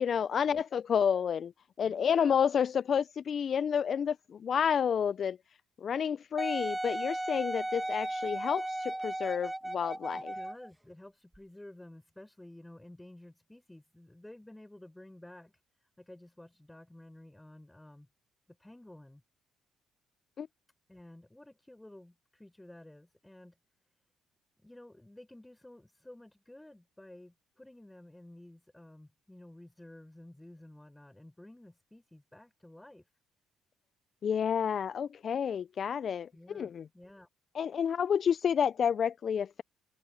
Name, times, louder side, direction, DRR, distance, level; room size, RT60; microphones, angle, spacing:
voice 1, 0.0-1.5 1.8-5.4 5.8-10.3 20.4-20.5 34.2-36.3 36.5-36.9 37.5-39.6, left 7 dB, 50° left, 0.4 m, -30 dB
voice 2, 1.8-2.4 10.1-15.5 15.8-18.1 18.6-19.2 20.9-23.6 24.6-33.0 36.3-37.3, left 1 dB, 10° left, 6.7 m, -52 dB
Wind instrument woodwind instrument, 6.4-10.7 11.3-11.4, right 1 dB, 10° right, 1.1 m, -35 dB
supercardioid pair, 75°, 0 cm